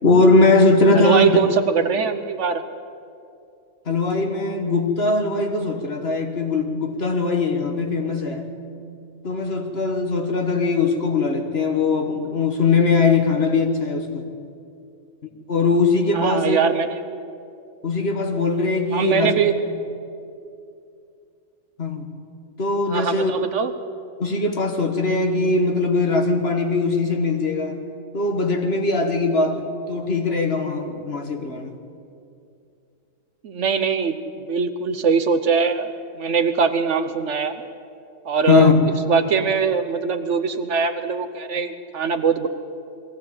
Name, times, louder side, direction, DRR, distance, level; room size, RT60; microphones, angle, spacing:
voice 1, 0.0-1.3 3.9-8.6 9.2-14.2 15.5-16.6 17.8-19.3 21.8-22.1 22.6-23.3 24.2-27.8 28.1-31.7 38.5-38.9, left 3 dB, 45° left, 4 dB, 1.8 m, -20 dB
voice 2, 0.9-2.6 16.1-17.0 18.9-19.5 22.9-23.7 33.4-34.2 34.5-37.6 38.2-38.8 39.1-42.5, right 5 dB, 60° right, 10 dB, 1.1 m, -22 dB
21.0 x 15.5 x 8.7 m, 2.5 s
omnidirectional pair, 1.5 m